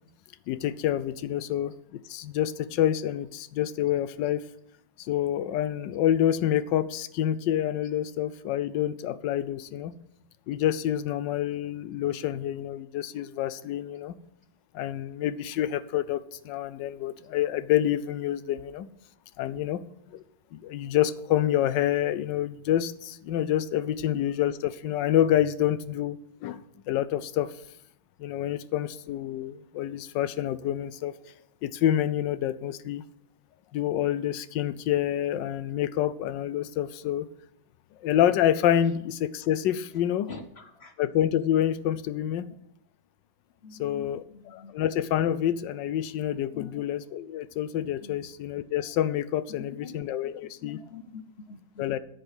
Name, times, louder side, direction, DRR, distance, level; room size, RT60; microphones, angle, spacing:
voice 1, 0.5-4.4 5.0-9.9 10.5-14.2 14.7-18.9 19.4-19.8 20.1-20.2 20.5-26.6 26.9-27.5 28.2-31.1 31.6-33.0 33.7-37.3 38.0-40.3 41.0-42.5 43.8-50.8 51.8-52.0, left 11 dB, 75° left, 1.3 m, -27 dB
voice 2, 40.3-40.9 43.6-44.7 46.5-46.7 48.0-48.2 49.8-49.9 50.6-51.9, left 5 dB, 55° left, 0.7 m, -45 dB
10.5 x 6.6 x 8.2 m
omnidirectional pair, 2.1 m